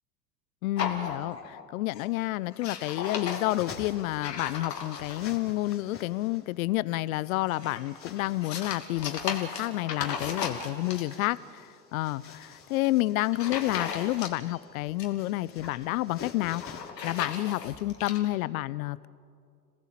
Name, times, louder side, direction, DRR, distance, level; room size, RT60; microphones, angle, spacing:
voice 1, 0.6-11.4 11.9-16.6 17.0-19.1, left 17 dB, 55° left, 19 dB, 0.8 m, -29 dB
sound 1, 0.8-1.6 1.9-2.2 2.5-5.4 7.3-11.3 12.6-12.9 13.3-14.6 14.8-15.8 16.4-18.2, left 6 dB, 75° left, 2.9 m, -36 dB
sound 2, 2.8-4.5 4.8-6.5 7.2-8.8 10.4-16.9, left 6 dB, 25° left, 3.1 m, -48 dB
27.5 x 18.0 x 7.5 m, 2.3 s
figure-of-eight pair, 90°, 49 cm